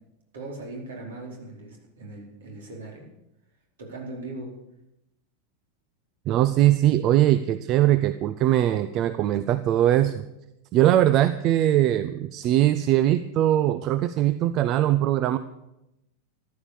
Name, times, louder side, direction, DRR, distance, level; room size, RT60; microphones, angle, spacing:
voice 1, 0.3-3.1 3.8-4.5, right 2 dB, 60° right, 0 dB, 4.5 m, -39 dB
voice 2, 6.3-10.2 10.7-15.4, right 13 dB, 35° right, 13 dB, 0.6 m, -21 dB
14.5 x 12.0 x 7.1 m, 0.88 s
figure-of-eight pair, 90°, 0 cm